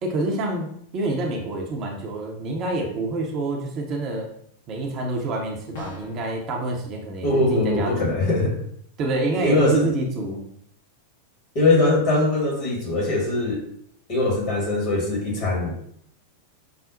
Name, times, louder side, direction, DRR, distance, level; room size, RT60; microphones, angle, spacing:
voice 1, 0.0-4.3 4.7-8.2 9.0-10.4, right 2 dB, 35° right, 0 dB, 0.7 m, -27 dB
sound 1, 5.7-6.3, left 4 dB, 55° left, 1.1 m, -38 dB
voice 2, 7.2-8.6 9.4-9.9 11.5-13.6 14.1-15.8, left 2 dB, 40° left, -2 dB, 1.5 m, -21 dB
5.8 x 2.0 x 2.6 m, 0.67 s
figure-of-eight pair, 90°, 0 cm